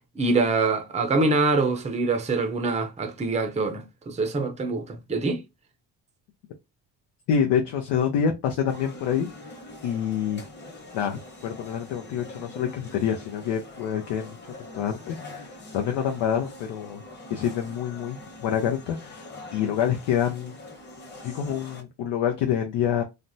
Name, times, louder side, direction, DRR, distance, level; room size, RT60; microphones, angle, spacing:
voice 1, 0.2-5.4, right 3 dB, 15° right, 0.6 m, -25 dB
voice 2, 7.3-9.3 9.8-10.4 10.9-14.4 14.7-15.5 15.7-17.0 17.3-20.5 21.2-23.0, left 8 dB, 80° left, 0.7 m, -27 dB
sound 1, 8.7-21.8, left 2 dB, 25° left, 1.1 m, -44 dB
3.3 x 2.0 x 2.6 m
cardioid pair, 90°, 42 cm